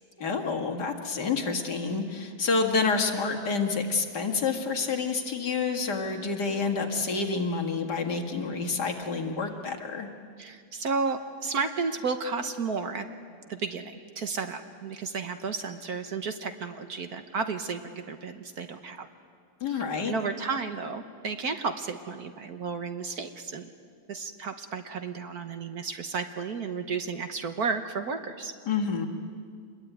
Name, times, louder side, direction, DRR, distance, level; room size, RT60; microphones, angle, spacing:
voice 1, 0.2-10.1 19.6-20.1 28.7-29.1, left 4 dB, 55° left, 3 dB, 2.5 m, -28 dB
voice 2, 10.4-13.1 13.5-19.1 19.7-23.7 24.1-28.5, right 5 dB, 55° right, 8 dB, 1.5 m, -33 dB
26.5 x 22.0 x 9.3 m, 2.2 s
omnidirectional pair, 2.1 m